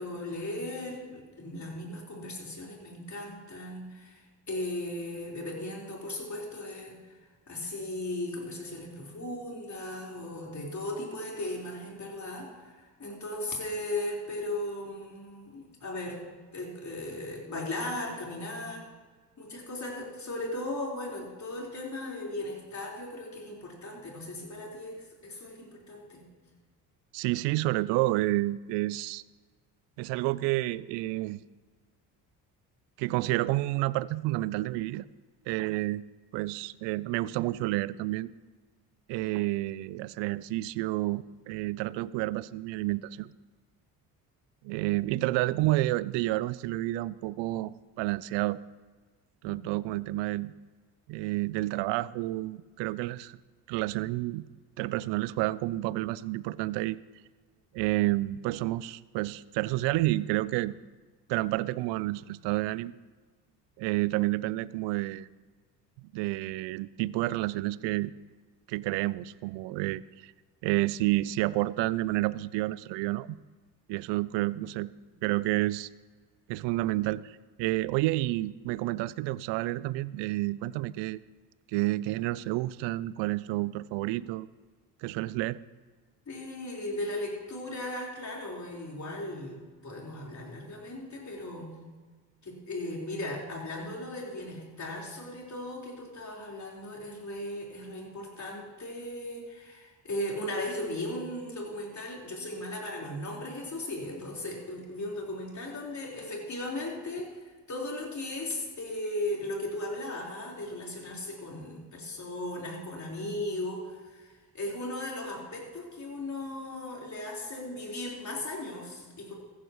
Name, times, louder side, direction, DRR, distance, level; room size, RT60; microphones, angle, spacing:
voice 1, 0.0-7.0 7.5-16.2 16.5-18.8 19.4-26.2 49.4-49.7 75.1-75.2 86.3-91.8 92.4-119.3, left 1 dB, 35° left, -2 dB, 4.4 m, -37 dB
voice 2, 27.1-29.2 30.0-31.4 33.0-35.0 35.5-36.0 36.3-38.3 39.1-43.3 44.6-48.6 49.4-50.5 51.1-53.4 53.7-54.4 54.8-57.0 57.7-60.7 61.3-62.9 63.8-65.3 66.1-68.1 68.7-70.3 70.6-73.4 73.9-74.9 75.2-75.9 76.5-81.2 81.7-84.5 85.0-85.6, right 18 dB, 60° right, 20 dB, 0.5 m, -30 dB
14.5 x 14.0 x 3.1 m, 1.4 s
hypercardioid pair, 55°, 49 cm